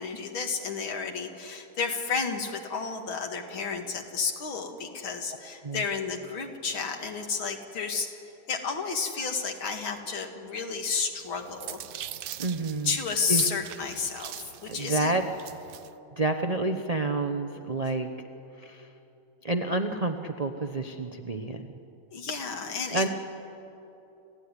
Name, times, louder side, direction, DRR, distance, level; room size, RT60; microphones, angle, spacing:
voice 1, 0.0-8.1 8.5-11.8 12.9-15.1 22.1-23.1, left 5 dB, 70° left, 4 dB, 2.7 m, -31 dB
sound 1, 11.2-15.9, right 11 dB, 85° right, 0.7 m, -42 dB
voice 2, 12.4-13.0 13.3-13.4 14.7-15.2 16.2-18.1 18.6-18.9 19.4-21.7 22.9-23.1, right 2 dB, 55° right, 5 dB, 0.4 m, -29 dB
29.5 x 15.0 x 9.8 m, 3.0 s
omnidirectional pair, 2.3 m